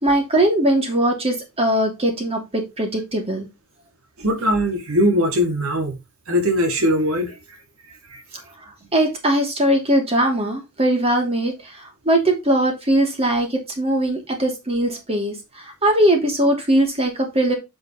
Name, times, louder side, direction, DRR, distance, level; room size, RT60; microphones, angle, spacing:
voice 1, 0.0-3.5 8.9-17.5, right 1 dB, 30° right, 2.9 m, -20 dB
voice 2, 4.2-6.0 6.3-7.3 8.1-8.2, equal, 70° right, 2.4 m, -20 dB
8.0 x 6.3 x 3.1 m
head